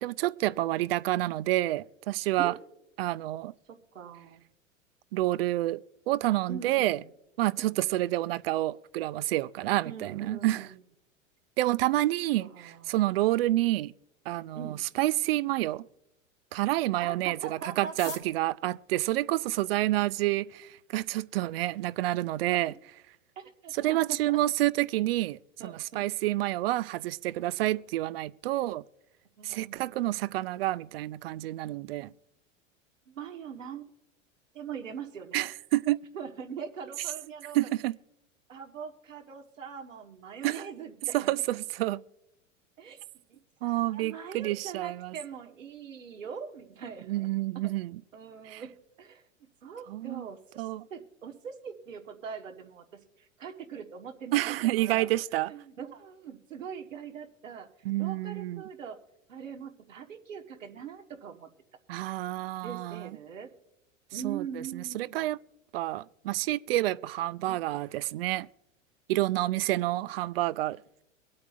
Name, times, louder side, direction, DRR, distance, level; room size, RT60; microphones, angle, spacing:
voice 1, 0.0-2.5 3.0-3.5 5.1-7.0 7.4-10.6 11.6-13.9 14.3-15.9 16.5-17.4 17.8-22.7 23.8-28.8 29.4-32.1 35.3-36.0 37.5-38.0 40.4-40.6 41.1-42.0 43.6-45.1 47.1-48.0 48.5-48.6 49.9-50.2 50.6-50.9 54.3-55.5 57.8-58.6 61.9-63.1 64.2-65.4 65.7-68.5 69.1-70.8, right 16 dB, 50° right, 0.4 m, -29 dB
voice 2, 0.5-1.0 2.4-2.6 3.7-4.4 6.5-7.1 9.8-10.8 11.8-11.9 12.4-12.9 14.5-14.8 17.0-18.2 23.3-24.4 25.6-26.0 29.4-30.3 33.1-33.8 34.5-35.5 36.1-37.7 38.5-41.3 42.8-43.0 43.3-47.3 48.1-48.7 49.0-49.2 49.6-52.9 53.2-55.1 55.5-57.7 58.0-59.0 59.3-61.5 62.6-63.5 64.1-65.3 67.5-67.8, right 7 dB, 75° right, 1.4 m, -42 dB
sound 1, 17.8-20.1 20.9-21.0 21.2-21.3 21.5-22.0 22.3-22.4 22.6-23.0 23.4-23.6 23.9-24.2, left 8 dB, 80° left, 1.0 m, -47 dB
24.0 x 8.6 x 2.4 m
figure-of-eight pair, 90°, 39 cm